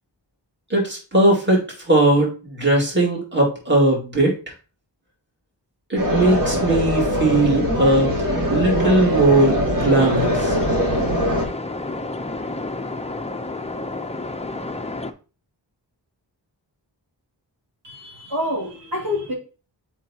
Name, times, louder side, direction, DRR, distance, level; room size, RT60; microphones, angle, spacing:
voice 1, 0.7-4.3 5.9-8.2 8.5-10.6, right 2 dB, 25° right, 2.2 m, -19 dB
sound 1, 6.0-11.5, equal, 45° right, 2.4 m, -22 dB
sound 2, 9.8-15.1, left 2 dB, 15° left, 0.6 m, -30 dB
voice 2, 17.8-19.3, left 1 dB, 65° right, 2.8 m, -27 dB
7.1 x 4.7 x 2.8 m
wide cardioid pair, 55°, 44 cm